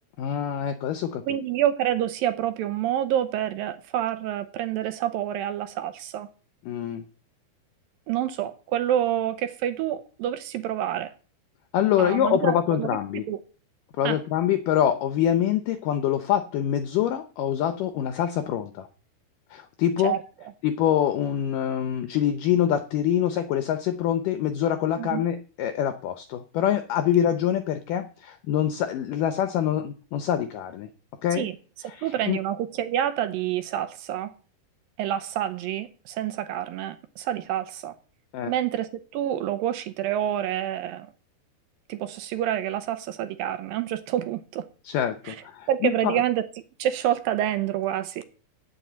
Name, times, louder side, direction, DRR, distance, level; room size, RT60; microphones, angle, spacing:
voice 1, 0.2-1.2 6.7-7.0 11.7-13.2 14.0-18.9 19.5-20.1 20.6-30.9 31.2-31.5 31.9-32.4 38.3-38.5 44.9-46.1, left 10 dB, 75° left, 2.1 m, -25 dB
voice 2, 1.3-6.3 8.1-11.1 12.0-13.4 14.0-14.2 20.0-20.2 25.0-25.3 31.3-31.6 32.0-34.3 35.0-37.9 38.5-41.1 41.9-44.7 45.3-45.4 45.7-46.4 46.8-48.2, right 11 dB, 75° right, 2.4 m, -27 dB
9.4 x 7.5 x 8.1 m
omnidirectional pair, 4.4 m